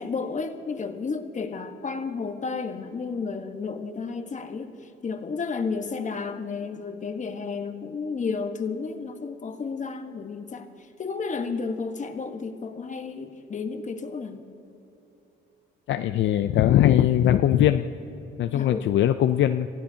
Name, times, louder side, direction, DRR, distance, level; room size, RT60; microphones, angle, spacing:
voice 1, 0.0-14.4 18.5-18.9, left 4 dB, 40° left, 6 dB, 1.3 m, -32 dB
voice 2, 15.9-17.8 18.4-19.7, left 11 dB, 70° left, 8 dB, 0.5 m, -20 dB
26.0 x 16.0 x 2.8 m, 2.9 s
cardioid pair, 90°, 20 cm